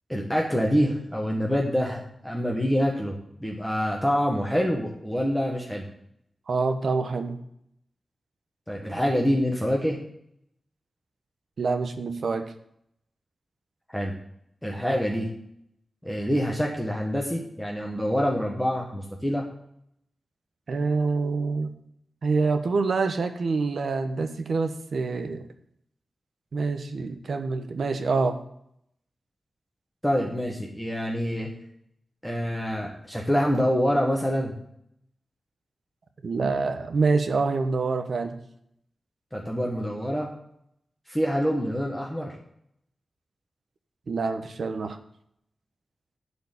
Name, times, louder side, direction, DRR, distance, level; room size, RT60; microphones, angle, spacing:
voice 1, 0.1-3.1 3.4-5.8 8.7-10.0 13.9-14.1 14.6-15.3 16.0-19.4 30.0-31.5 32.2-34.5 39.3-40.3 41.1-42.3, equal, 5° left, -1 dB, 1.6 m, -26 dB
voice 2, 6.5-7.4 11.6-12.5 20.7-21.7 22.2-25.4 26.5-28.4 36.2-38.4 44.1-45.0, right 4 dB, 65° right, 8 dB, 1.2 m, -26 dB
11.5 x 5.1 x 8.2 m, 0.73 s
wide cardioid pair, 140°, 0 cm